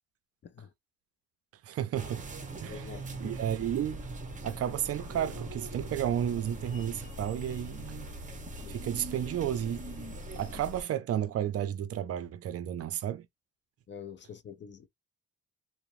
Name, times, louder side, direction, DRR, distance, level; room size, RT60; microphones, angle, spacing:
voice 1, 1.6-2.3 2.6-4.1 4.4-8.1 8.7-13.3, right 10 dB, 55° right, 0.5 m, -33 dB
sound 1, 1.9-10.8, right 2 dB, 25° right, 0.9 m, -41 dB
voice 2, 2.7-3.3 8.6-8.7 13.9-14.9, left 7 dB, 40° left, 0.5 m, -46 dB
2.9 x 2.1 x 2.5 m
cardioid pair, 90°, 30 cm